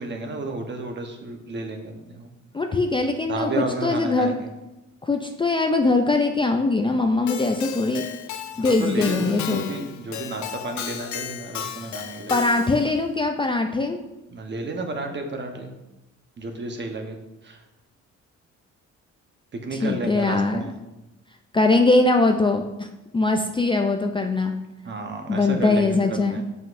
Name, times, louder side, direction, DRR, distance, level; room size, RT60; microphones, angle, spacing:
voice 1, 0.0-2.3 3.3-4.5 8.5-12.3 14.3-15.7 16.4-17.2 17.4-17.6 19.5-20.8 24.8-26.4, right 2 dB, 35° right, 4 dB, 1.0 m, -32 dB
voice 2, 2.5-4.4 5.0-8.1 8.6-9.6 12.3-14.0 19.7-20.7 21.5-22.9 23.1-24.5 25.3-26.4, left 3 dB, 15° left, 3 dB, 0.4 m, -21 dB
Keyboard (musical), 7.3-12.9, left 9 dB, 70° left, 0.6 m, -34 dB
7.5 x 5.4 x 2.6 m, 0.99 s
cardioid pair, 90°, 30 cm